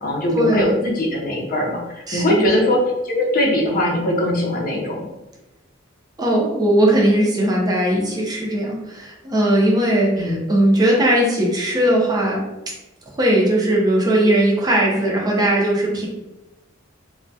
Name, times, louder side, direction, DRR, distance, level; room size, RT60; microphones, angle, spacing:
voice 1, 0.0-5.1 10.2-10.4, left 1 dB, 45° left, -1 dB, 0.5 m, -21 dB
voice 2, 2.1-2.5 6.2-12.4 13.1-16.1, right 1 dB, 20° right, -2 dB, 0.5 m, -18 dB
2.2 x 2.1 x 2.6 m, 0.98 s
head